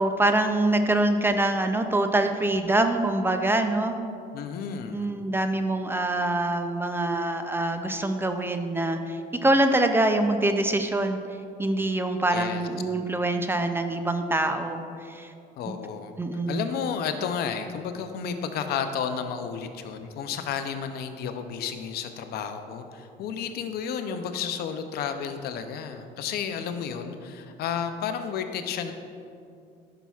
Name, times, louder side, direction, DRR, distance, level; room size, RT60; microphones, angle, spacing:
voice 1, 0.0-4.0 4.9-11.2 11.6-15.3 15.7-15.8 16.2-16.7, right 2 dB, 15° right, 7 dB, 0.4 m, -25 dB
voice 2, 4.3-5.1 12.3-12.7 15.6-16.2 16.5-28.9, left 7 dB, 70° left, 8 dB, 0.5 m, -32 dB
10.0 x 5.7 x 2.4 m, 2.5 s
cardioid pair, 110°, 17 cm